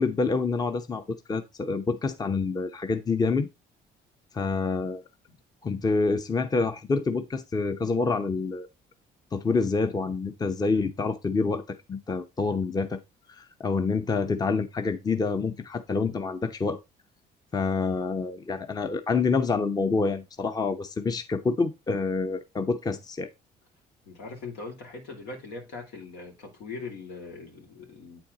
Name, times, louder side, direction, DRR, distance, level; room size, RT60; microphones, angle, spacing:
voice 1, 0.0-3.5 4.3-5.0 5.6-8.7 9.3-13.0 13.3-16.8 17.5-23.3, left 4 dB, 25° left, 0.7 m, -27 dB
voice 2, 24.0-28.2, left 4 dB, 85° left, 2.9 m, -41 dB
8.7 x 4.4 x 3.9 m
cardioid pair, 110°, 17 cm